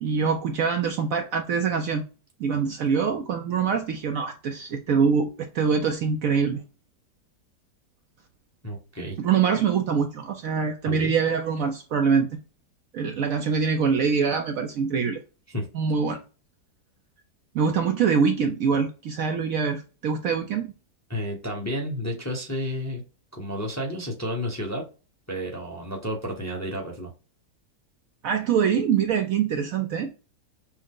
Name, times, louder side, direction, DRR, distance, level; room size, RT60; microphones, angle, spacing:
voice 1, 0.0-2.0 2.4-6.6 9.2-12.4 12.9-15.2 15.7-16.2 17.5-20.7 28.2-30.1, right 6 dB, 70° right, 0.9 m, -24 dB
voice 2, 8.6-9.2 10.8-11.2 15.5-15.7 21.1-23.0 23.3-24.8 25.3-27.1, equal, 15° left, 0.8 m, -31 dB
6.0 x 2.1 x 3.7 m
omnidirectional pair, 1.8 m